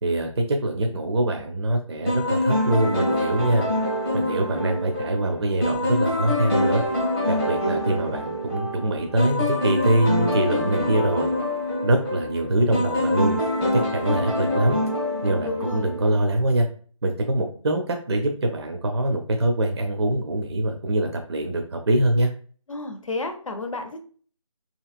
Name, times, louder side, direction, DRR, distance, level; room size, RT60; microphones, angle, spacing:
voice 1, 0.0-3.7 4.1-6.8 7.3-11.3 11.8-13.4 13.7-14.8 15.2-16.7 17.0-22.3, right 1 dB, 55° right, 4 dB, 0.5 m, -24 dB
sound 1, 2.1-16.3, left 1 dB, 5° left, 0.5 m, -25 dB
voice 2, 15.5-15.9 22.7-24.0, left 2 dB, 75° left, 6 dB, 0.7 m, -32 dB
2.9 x 2.7 x 2.4 m, 0.43 s
figure-of-eight pair, 165°, 17 cm